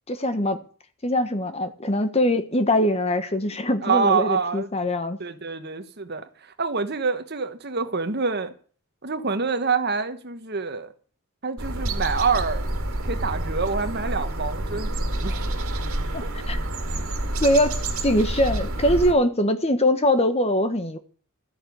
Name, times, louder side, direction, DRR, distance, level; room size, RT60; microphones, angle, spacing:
voice 1, 0.1-0.6 1.0-5.2 16.1-16.6 17.4-21.0, left 1 dB, 30° left, 1.3 m, -22 dB
voice 2, 3.8-4.7 5.2-6.2 6.6-8.5 9.0-10.9 11.4-12.7 13.1-15.5, right 5 dB, 50° right, 1.4 m, -26 dB
sound 1, 11.6-19.1, right 1 dB, 80° right, 2.3 m, -28 dB
13.5 x 7.9 x 9.4 m
head